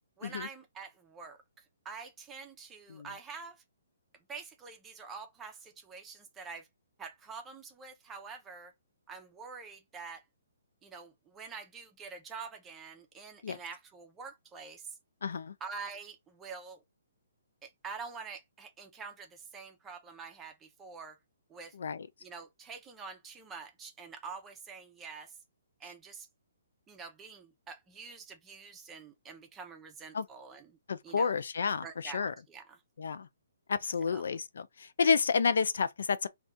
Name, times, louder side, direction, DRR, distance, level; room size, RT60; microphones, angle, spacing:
voice 1, 0.2-3.6 4.3-6.7 7.0-8.7 9.1-10.3 10.8-15.0 15.6-16.8 17.6-21.2 21.5-21.7 22.2-25.3 25.8-26.3 26.9-30.8 31.0-31.4 31.8-32.8 34.1-34.3, right 5 dB, 15° right, 0.6 m, -46 dB
voice 2, 15.2-15.5 21.8-22.1 30.1-30.3 30.9-32.3 33.0-33.3 33.7-36.3, left 5 dB, 70° left, 0.4 m, -30 dB
2.6 x 2.3 x 3.4 m
hypercardioid pair, 150°, 0 cm